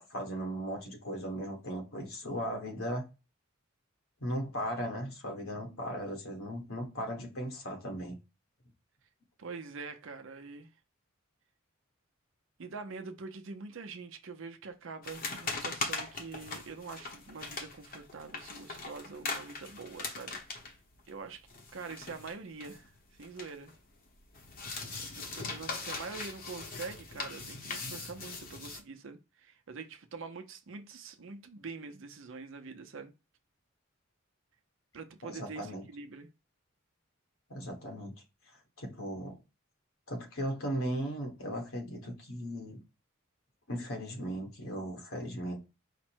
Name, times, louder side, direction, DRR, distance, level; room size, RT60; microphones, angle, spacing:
voice 1, 0.0-3.0 4.2-8.2 35.2-35.8 37.5-38.1 38.5-39.4 40.1-42.8 43.7-45.6, equal, 80° left, 1.4 m, -37 dB
voice 2, 9.4-10.7 12.6-20.6 21.1-23.7 25.1-33.1 34.9-36.3, right 4 dB, 65° right, 0.6 m, -45 dB
sound 1, 15.0-23.8 24.1-28.8, left 3 dB, 45° left, 0.9 m, -40 dB
5.0 x 2.1 x 4.4 m
head